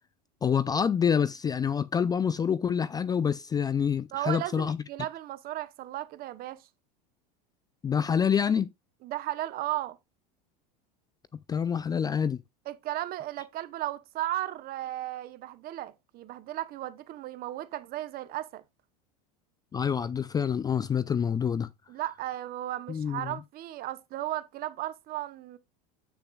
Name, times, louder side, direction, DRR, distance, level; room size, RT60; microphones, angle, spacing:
voice 1, 0.4-4.8 7.8-8.7 11.5-12.4 19.7-21.7 22.9-23.3, left 7 dB, 20° left, 0.4 m, -27 dB
voice 2, 4.1-6.7 9.0-10.0 12.7-18.6 21.9-25.6, right 14 dB, 45° right, 0.9 m, -35 dB
7.9 x 6.8 x 2.3 m
hypercardioid pair, 100°, 21 cm